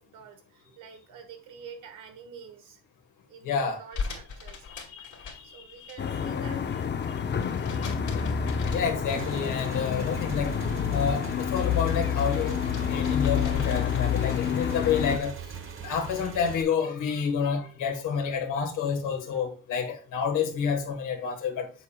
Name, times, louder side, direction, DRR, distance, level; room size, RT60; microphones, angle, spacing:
voice 1, 0.0-2.8 3.3-4.7 5.4-6.7 17.4-18.1, right 6 dB, 85° right, 1.5 m, -48 dB
voice 2, 3.4-3.8 4.7-6.0 8.7-10.5 10.9-12.6 12.9-15.3 15.8-21.7, left 6 dB, 90° left, 1.5 m, -29 dB
sound 1, 3.9-6.0 6.2-9.7 10.1-11.0 11.4-14.6, left 5 dB, 70° left, 2.4 m, -41 dB
sound 2, 6.0-15.2, left 8 dB, 35° left, 0.6 m, -28 dB
Motorcycle / Engine, 9.1-16.6, right 7 dB, 45° right, 1.1 m, -41 dB
7.8 x 7.1 x 2.3 m
cardioid pair, 90°, 30 cm